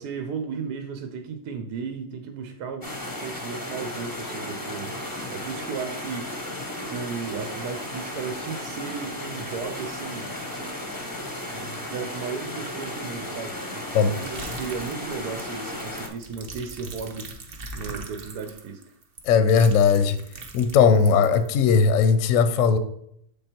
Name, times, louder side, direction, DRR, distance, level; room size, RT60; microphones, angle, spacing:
voice 1, 0.0-2.9 3.2-4.9 5.3-10.3 11.4-17.3 17.7-18.9, right 5 dB, 80° right, 1.3 m, -35 dB
sound 1, 2.8-16.1, left 1 dB, 20° left, 0.7 m, -35 dB
sound 2, 13.9-21.5, right 3 dB, 45° right, 0.8 m, -41 dB
voice 2, 19.2-20.2 20.5-22.8, left 6 dB, 65° left, 0.9 m, -18 dB
7.5 x 3.5 x 4.4 m
omnidirectional pair, 1.7 m